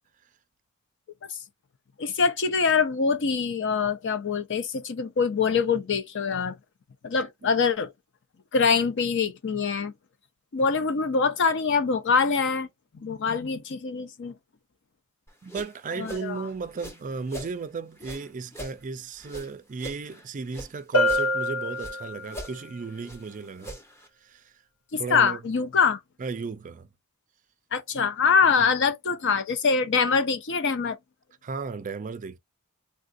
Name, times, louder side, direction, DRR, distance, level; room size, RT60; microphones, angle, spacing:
voice 1, 2.0-6.6 7.0-7.9 8.5-9.9 10.5-12.7 12.9-14.4 15.9-16.5 24.9-26.0 27.7-31.0, left 5 dB, 55° left, 0.5 m, -24 dB
sound 1, 15.3-17.6 18.0-20.7 21.0-22.0 22.3-24.1, equal, 10° left, 0.7 m, -43 dB
voice 2, 15.4-23.8 24.2-24.5 25.0-25.4 26.2-26.9 31.4-32.4, right 4 dB, 35° right, 0.4 m, -35 dB
Bell, 20.9-22.5, left 1 dB, 85° left, 0.9 m, -25 dB
3.5 x 2.5 x 2.5 m
head